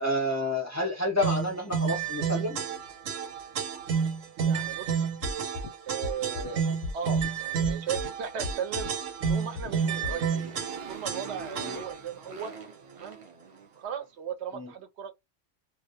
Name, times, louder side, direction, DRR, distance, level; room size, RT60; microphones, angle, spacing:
voice 1, 0.0-2.6 10.1-10.2 11.6-11.8 14.5-14.7, left 1 dB, 20° left, 0.4 m, -29 dB
sound 1, 1.2-12.1, right 6 dB, 90° right, 1.0 m, -30 dB
voice 2, 4.4-5.0 5.9-6.7 6.9-8.9 9.3-10.4 10.9-12.5 13.0-13.2 13.8-15.1, right 7 dB, 65° right, 0.8 m, -36 dB
sound 2, 5.2-5.7 6.0-6.5 6.8-7.3 7.6-8.1 8.4-8.9 9.2-9.7 10.0-10.1, left 3 dB, 60° left, 0.7 m, -35 dB
Motorcycle, 9.4-14.0, right 4 dB, 45° right, 0.4 m, -44 dB
2.3 x 2.1 x 2.7 m
omnidirectional pair, 1.3 m